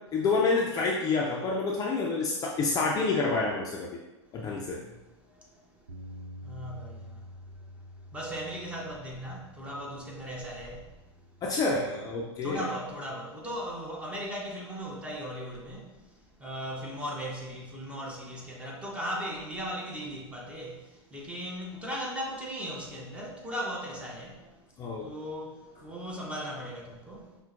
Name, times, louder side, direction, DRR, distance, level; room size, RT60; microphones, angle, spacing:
voice 1, 0.1-3.9 4.3-4.8 11.4-12.7 24.8-25.1, left 3 dB, 25° left, 0.4 m, -28 dB
voice 2, 4.5-5.8 6.4-7.3 8.1-11.1 12.4-24.6 25.0-27.4, equal, 10° right, 0.7 m, -38 dB
Bass guitar, 5.9-12.1, left 1 dB, 85° right, 0.7 m, -48 dB
5.5 x 2.1 x 2.5 m
hypercardioid pair, 105°, 15 cm